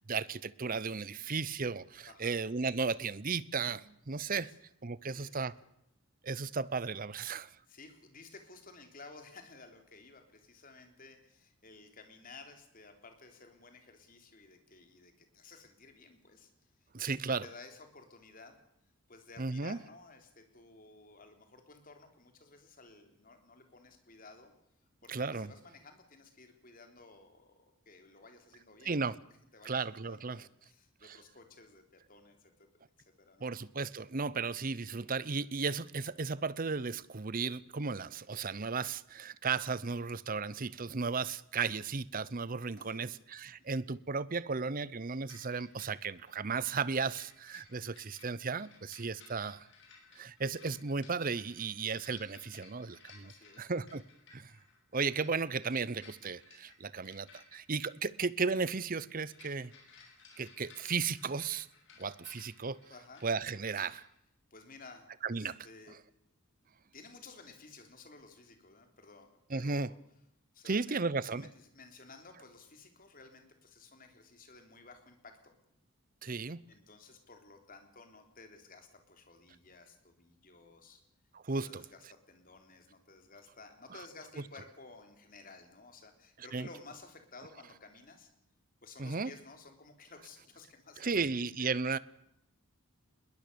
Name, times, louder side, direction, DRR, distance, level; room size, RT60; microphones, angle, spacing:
voice 1, 0.1-4.5 4.8-5.5 6.2-7.5 16.9-17.5 19.4-19.8 25.1-25.5 28.8-29.2 29.6-30.4 31.0-31.2 33.4-49.7 50.1-53.3 53.6-54.0 54.3-54.5 54.9-59.7 60.4-61.7 62.0-62.8 63.2-64.0 65.2-65.6 69.5-69.9 70.7-71.5 76.2-76.6 81.3-81.8 86.5-86.7 89.0-89.3 91.0-92.0, right 4 dB, 40° right, 0.7 m, -35 dB
voice 2, 2.1-2.4 4.4-4.6 5.1-5.5 7.7-16.9 17.4-18.6 19.1-24.5 25.0-29.1 29.5-32.7 33.0-33.5 42.8-43.2 43.6-43.8 53.2-53.7 62.9-63.2 64.5-66.0 66.9-70.0 70.5-71.0 71.2-75.6 76.7-81.0 81.6-88.3 88.8-91.7, left 3 dB, 40° left, 3.5 m, -55 dB
sound 1, 45.3-64.0, left 4 dB, 55° left, 7.0 m, -59 dB
21.5 x 20.5 x 6.9 m
head